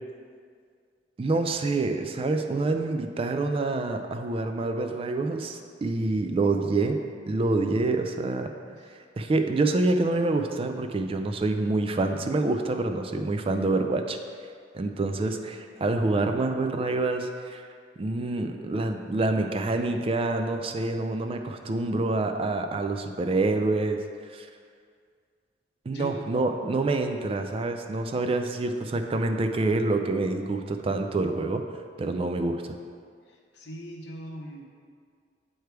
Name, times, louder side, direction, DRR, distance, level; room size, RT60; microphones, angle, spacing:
voice 1, 1.2-7.0 7.3-8.5 9.2-14.2 14.7-17.7 18.0-24.0 24.3-24.5 25.9-31.6 32.0-32.6, right 2 dB, 30° right, 6 dB, 0.3 m, -27 dB
voice 2, 25.9-26.2 33.3-34.7, equal, 65° left, 0 dB, 0.9 m, -40 dB
8.0 x 3.3 x 4.5 m, 2.1 s
head